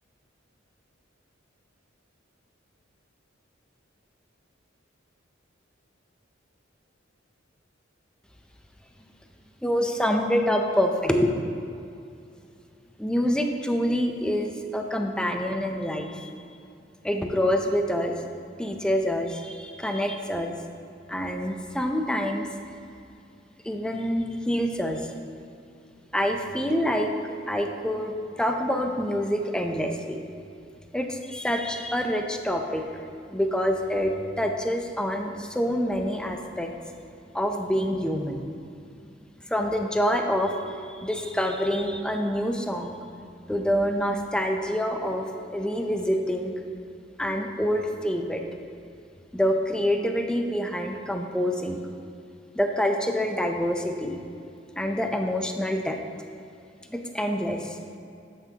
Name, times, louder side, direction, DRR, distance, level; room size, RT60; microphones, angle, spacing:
voice 1, 9.6-11.4 13.0-16.3 17.0-18.2 18.6-20.5 21.1-22.8 23.6-25.1 26.1-27.1 27.5-30.2 30.9-32.8 33.3-36.7 37.3-38.4 39.5-43.0 43.5-46.5 47.2-48.4 49.3-51.8 52.5-54.2 54.7-56.0 56.9-57.8, equal, 5° left, 4 dB, 0.5 m, -26 dB
12.5 x 6.0 x 2.8 m, 2.5 s
head